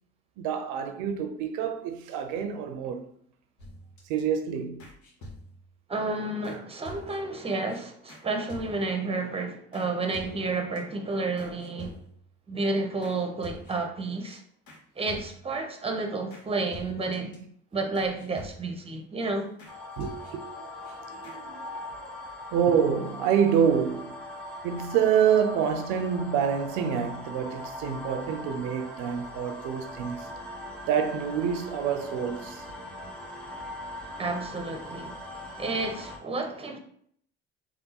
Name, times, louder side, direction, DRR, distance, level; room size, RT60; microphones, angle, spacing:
voice 1, 0.4-3.0 4.1-4.8 20.0-24.2 24.6-30.3 30.8-32.7, right 8 dB, 80° right, 0.6 m, -27 dB
sound 1, 3.6-4.2 4.8-5.7 6.4-6.6 6.9-7.4 7.7-7.8 8.1-8.2 8.5-9.0 9.7-9.9 10.1-10.8 11.4-12.3 13.0-13.2 13.4-14.0 14.3-14.4 14.7-14.8 15.1-15.6 16.3-16.4 16.7-17.4 17.9-18.9 19.6-19.7 20.0-20.5 20.8-20.9 21.2-21.4, left 1 dB, 75° left, 1.1 m, -46 dB
voice 2, 5.9-12.0 12.5-14.4 15.0-17.3 17.7-19.5 34.2-35.2 35.6-36.8, right 3 dB, 20° right, 0.8 m, -31 dB
sound 2, 19.6-36.2, left 1 dB, 5° left, 1.0 m, -41 dB
3.5 x 2.4 x 2.9 m
supercardioid pair, 70°, 30 cm